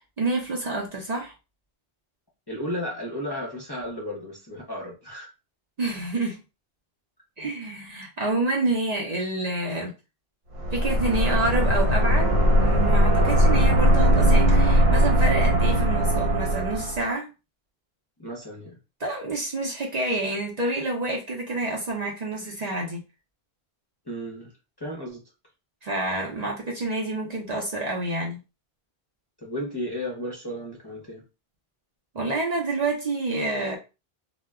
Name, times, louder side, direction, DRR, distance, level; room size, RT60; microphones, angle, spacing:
voice 1, 0.2-1.3 5.8-6.4 7.4-9.9 10.7-12.3 12.6-17.3 19.0-23.0 25.8-28.4 32.1-33.8, right 2 dB, 45° right, -1 dB, 0.6 m, -28 dB
voice 2, 2.5-5.3 13.2-13.4 18.2-18.8 24.1-24.5 24.8-25.2 29.4-31.2, equal, 30° left, -3 dB, 0.6 m, -34 dB
sound 1, 10.5-17.0, equal, 80° right, 0.9 m, -20 dB
2.1 x 2.0 x 3.5 m, 0.29 s
omnidirectional pair, 1.0 m